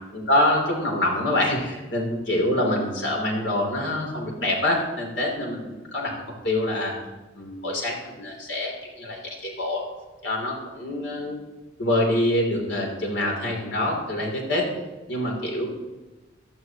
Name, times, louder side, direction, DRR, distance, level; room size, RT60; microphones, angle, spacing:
voice 1, 0.1-6.1 6.4-6.9 7.4-9.8 10.2-11.4 11.8-14.7 15.1-15.7, left 1 dB, 75° left, 0 dB, 3.2 m, -25 dB
15.0 x 12.5 x 3.0 m, 1.2 s
head